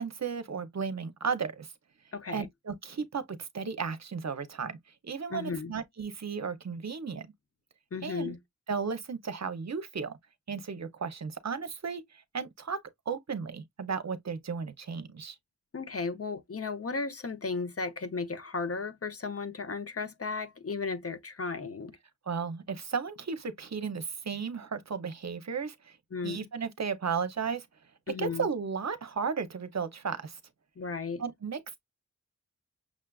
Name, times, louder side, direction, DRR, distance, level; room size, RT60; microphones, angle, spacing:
voice 1, 0.0-1.7 2.3-4.8 5.0-7.3 8.0-8.3 8.7-10.2 10.5-12.8 13.1-15.4 22.3-26.0 26.2-27.7 28.2-30.4 31.2-31.8, right 5 dB, 60° right, 0.7 m, -34 dB
voice 2, 2.1-2.5 5.3-5.7 7.9-8.4 15.7-21.9 26.1-26.5 28.1-28.5 30.8-31.2, left 4 dB, 50° left, 0.6 m, -35 dB
6.1 x 2.3 x 2.3 m
wide cardioid pair, 65°, 31 cm